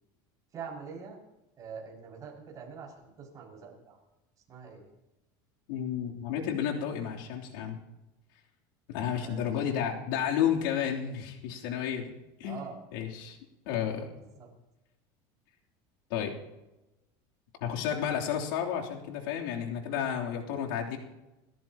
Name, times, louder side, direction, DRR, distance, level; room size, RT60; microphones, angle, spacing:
voice 1, 0.5-1.2 1.6-4.0 4.5-4.8 9.0-9.8 12.4-12.8 14.4-14.5, right 6 dB, 30° right, -1 dB, 6.3 m, -44 dB
voice 2, 5.7-7.8 8.9-12.1 12.4-12.6 12.9-13.4 13.6-14.1 16.1-16.3 17.6-21.0, left 9 dB, 80° left, -1 dB, 3.3 m, -31 dB
28.5 x 14.0 x 3.0 m, 0.99 s
supercardioid pair, 140°, 11 cm